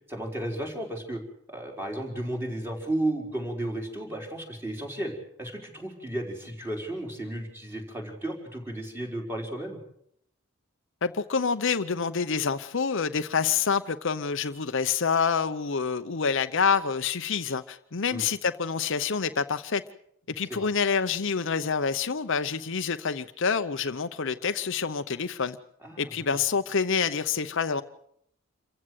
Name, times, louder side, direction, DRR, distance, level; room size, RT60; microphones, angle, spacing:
voice 1, 0.1-1.2 1.5-5.1 5.4-9.8 18.1-18.2 20.5-20.7 25.8-26.4, right 1 dB, 10° right, 1 dB, 4.7 m, -33 dB
voice 2, 11.0-19.8 20.3-25.6 26.0-27.8, left 5 dB, 60° left, 10 dB, 0.8 m, -27 dB
27.5 x 15.5 x 8.0 m, 0.71 s
head